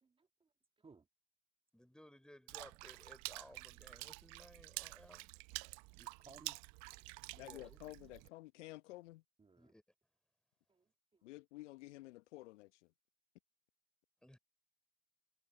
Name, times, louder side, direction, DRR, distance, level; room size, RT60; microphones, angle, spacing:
voice 1, 0.0-1.1 6.0-6.6 6.9-7.1 9.4-9.7 10.7-11.3, right 4 dB, 15° right, 1.8 m, -63 dB
voice 2, 1.7-5.3 7.3-7.8 9.6-9.8 14.2-14.4, left 1 dB, ahead, 3.4 m, -59 dB
Water / Splash splatter, 2.5-8.3, right 28 dB, 50° right, 0.7 m, -49 dB
voice 3, 7.4-9.2 11.2-12.9, left 19 dB, 65° left, 0.9 m, -52 dB
hypercardioid pair, 90°, 38 cm